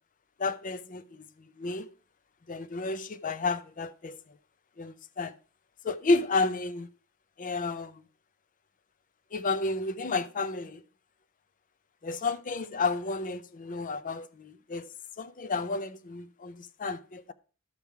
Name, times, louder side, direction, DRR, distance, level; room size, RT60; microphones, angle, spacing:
voice 1, 0.4-1.3 1.6-1.9 2.5-4.2 4.8-5.3 5.8-6.9 7.4-8.0 9.3-10.8 12.0-14.9 15.2-17.3, left 3 dB, 40° left, 0.6 m, -31 dB
13.0 x 5.5 x 4.7 m
head